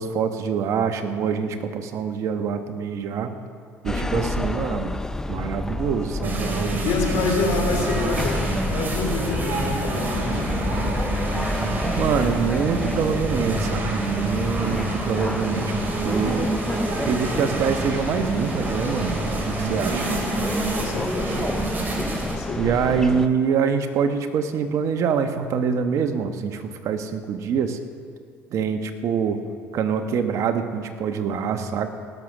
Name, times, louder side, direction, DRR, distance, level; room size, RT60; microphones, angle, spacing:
voice 1, 0.0-3.3 3.8-4.9 5.3-7.0 7.4-7.5 11.9-16.5 17.1-19.2 19.5-20.0 22.5-27.8 28.5-29.4 29.7-31.9, right 6 dB, 60° right, 8 dB, 1.1 m, -25 dB
voice 2, 3.9-4.3 6.8-8.5 8.7-10.4 20.8-21.4 22.3-23.0, left 4 dB, 70° left, 2 dB, 2.8 m, -27 dB
sound 1, 3.9-23.3, left 2 dB, 10° left, 0.5 m, -30 dB
sound 2, 6.2-22.4, right 2 dB, 35° right, 3.2 m, -28 dB
18.5 x 6.7 x 6.2 m, 2.1 s
supercardioid pair, 80°, 6 cm